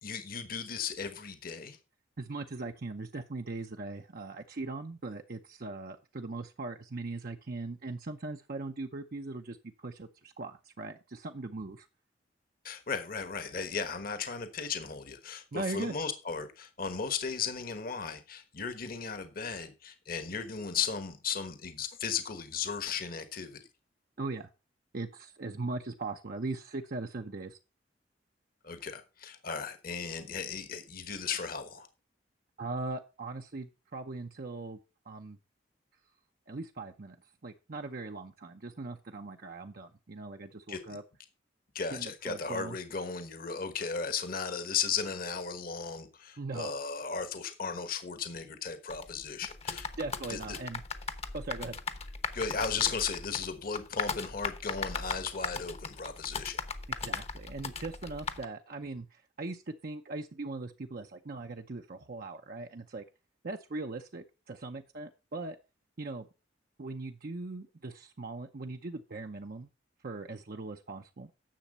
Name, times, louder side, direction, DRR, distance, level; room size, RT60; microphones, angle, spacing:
voice 1, 0.0-1.8 12.6-23.6 28.6-31.9 40.7-40.8 41.7-49.9 50.3-50.6 52.3-56.6, left 6 dB, 50° left, 10 dB, 1.3 m, -36 dB
voice 2, 2.2-11.9 15.5-15.9 24.2-24.5 24.9-27.6 32.6-34.8 35.1-35.4 36.5-37.2 37.4-41.0 41.9-42.8 46.4-46.7 50.0-50.8 51.3-51.8 57.0-63.0 63.4-65.6 66.0-66.3 66.8-69.7 70.0-71.3, right 3 dB, 55° right, 4 dB, 0.7 m, -40 dB
sound 1, 48.9-58.5, left 5 dB, 35° left, 1.0 m, -38 dB
10.5 x 7.0 x 5.4 m, 0.30 s
head